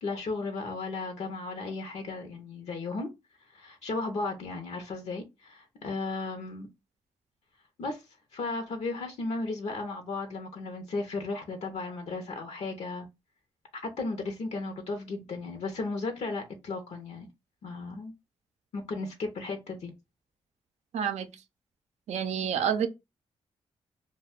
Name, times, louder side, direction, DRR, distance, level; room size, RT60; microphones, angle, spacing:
voice 1, 0.0-3.1 3.5-6.7 7.8-8.0 8.3-13.1 13.8-17.3 17.6-18.1 18.7-19.9, left 3 dB, 70° left, 0.6 m, -35 dB
voice 2, 20.9-21.3 22.1-22.9, right 8 dB, 80° right, 0.5 m, -28 dB
2.4 x 2.2 x 3.4 m
cardioid pair, 60°, 11 cm